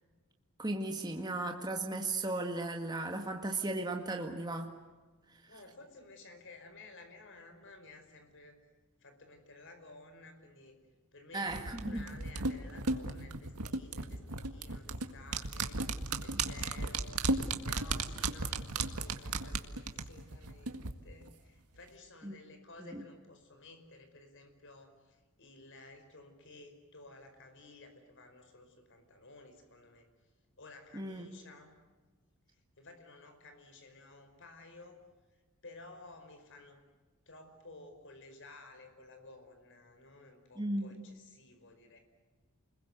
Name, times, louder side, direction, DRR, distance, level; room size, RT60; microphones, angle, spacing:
voice 1, 0.6-4.7 5.3-5.4 11.3-12.0 22.2-22.4 22.8-23.0 30.9-31.3 40.6-41.0, right 2 dB, 20° right, 3 dB, 1.8 m, -36 dB
voice 2, 5.5-8.6 9.0-10.7 11.1-15.8 16.2-30.1 30.6-31.8 32.5-35.0 35.6-36.8 37.2-42.0, left 3 dB, 55° left, 6 dB, 5.1 m, -54 dB
sound 1, 11.5-20.9 21.2-21.3, right 3 dB, 85° right, 1.9 m, -35 dB
30.0 x 22.0 x 8.1 m, 1.3 s
head